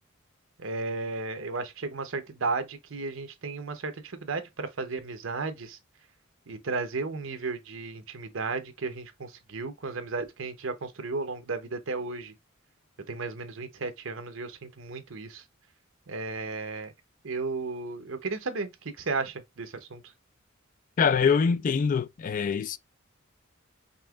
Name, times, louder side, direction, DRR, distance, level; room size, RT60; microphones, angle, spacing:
voice 1, 0.6-5.8 6.5-12.3 13.1-15.4 16.1-16.9 17.2-20.1, right 3 dB, 80° right, 0.9 m, -34 dB
voice 2, 21.0-22.8, left 6 dB, 40° left, 0.3 m, -24 dB
5.3 x 2.9 x 2.3 m
head